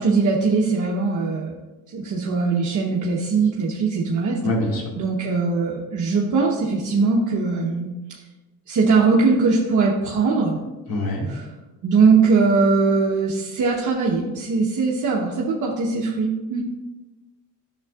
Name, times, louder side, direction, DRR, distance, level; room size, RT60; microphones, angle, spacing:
voice 1, 0.0-1.6 1.9-4.5 5.0-8.2 8.7-10.6 11.3-11.5 11.8-16.6, right 4 dB, 55° right, -2 dB, 1.0 m, -21 dB
voice 2, 4.4-4.9 10.9-11.3, left 1 dB, 65° left, -1 dB, 2.1 m, -24 dB
9.6 x 6.9 x 2.4 m, 1.1 s
cardioid pair, 105°, 37 cm